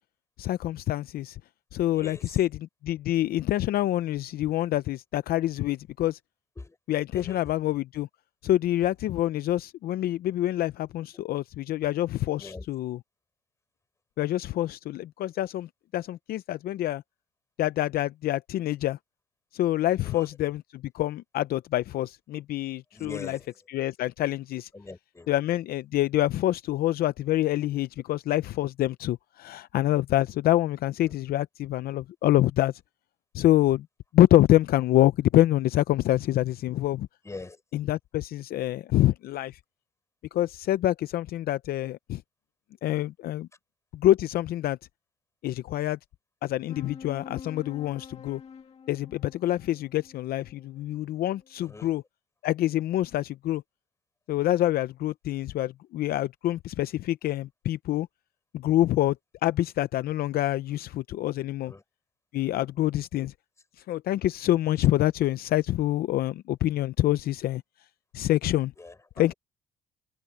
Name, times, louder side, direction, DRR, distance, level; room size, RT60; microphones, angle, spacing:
voice 1, 0.4-1.4 1.7-2.5 2.8-6.2 6.9-8.1 8.4-13.0 14.2-17.0 17.6-19.0 19.5-23.4 23.7-24.7 25.3-32.7 33.3-33.9 34.1-37.1 37.7-39.6 40.3-42.2 42.8-43.5 43.9-44.8 45.4-46.0 46.4-48.4 48.9-52.0 52.4-53.6 54.3-58.1 58.5-59.2 59.4-61.7 62.3-63.3 63.9-67.6 68.1-68.7 69.2-69.3, left 14 dB, 65° left, 0.6 m, -26 dB
voice 2, 1.9-2.4 6.6-6.8 7.1-7.5 12.4-12.7 20.0-20.3 22.9-23.5 24.7-25.3 31.0-31.1 37.2-37.6 51.6-51.9 61.7-61.8 68.8-69.3, left 3 dB, 15° left, 5.2 m, -43 dB
sound 1, 46.7-51.5, left 6 dB, 40° left, 2.4 m, -47 dB
cardioid pair, 110°, 17 cm